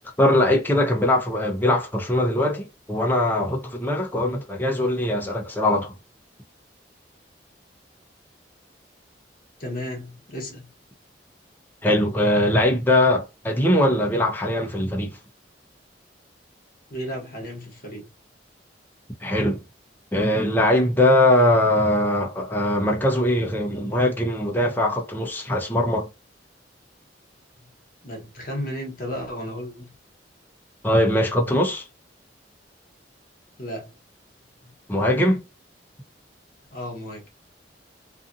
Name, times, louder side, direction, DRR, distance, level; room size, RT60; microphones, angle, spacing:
voice 1, 0.2-5.9 11.8-15.2 19.2-19.6 20.1-26.1 30.8-31.9 34.9-35.4, left 1 dB, 10° left, 0.6 m, -21 dB
voice 2, 9.6-10.7 16.9-18.1 28.0-29.9 33.6-33.9 34.6-34.7 36.7-37.2, equal, 55° left, 1.1 m, -34 dB
2.5 x 2.5 x 2.6 m
head